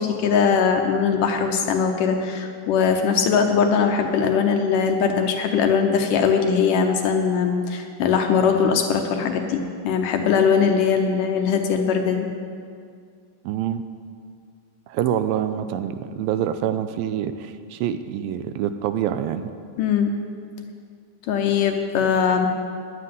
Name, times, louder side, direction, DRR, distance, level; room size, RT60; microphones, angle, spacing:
voice 1, 0.0-12.3 19.8-20.2 21.3-22.5, left 6 dB, 70° left, 4 dB, 2.3 m, -21 dB
voice 2, 13.5-13.8 14.9-19.5, right 10 dB, 85° right, 10 dB, 2.3 m, -26 dB
10.5 x 9.6 x 9.4 m, 2.2 s
omnidirectional pair, 4.2 m